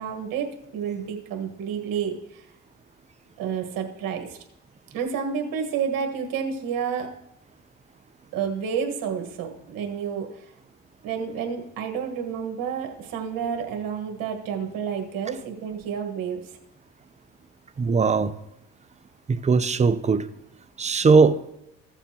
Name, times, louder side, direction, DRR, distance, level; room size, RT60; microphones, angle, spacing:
voice 1, 0.0-2.4 3.4-4.4 4.9-7.1 8.3-10.5 11.0-16.6, right 7 dB, 75° right, 3 dB, 1.5 m, -30 dB
voice 2, 17.8-18.3 19.3-20.3 20.8-21.4, right 4 dB, 20° right, 12 dB, 0.6 m, -19 dB
14.5 x 7.0 x 2.9 m, 0.82 s
supercardioid pair, 80°, 34 cm